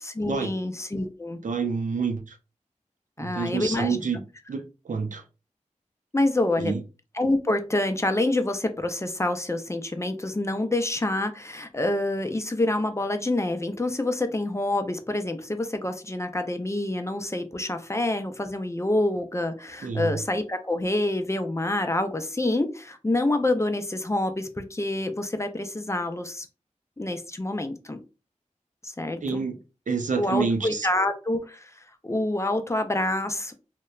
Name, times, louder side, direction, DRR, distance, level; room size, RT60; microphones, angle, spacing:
voice 1, 0.0-1.4 3.2-4.0 6.1-6.7 7.1-26.5 27.0-28.0 28.8-29.4 30.2-33.5, left 1 dB, 20° left, 0.4 m, -27 dB
voice 2, 1.4-2.4 3.2-4.2 4.5-5.2 6.6-6.8 19.8-20.2 29.2-29.6 29.9-30.9, right 5 dB, 75° right, 0.4 m, -28 dB
2.8 x 2.1 x 2.3 m
wide cardioid pair, 55°, 13 cm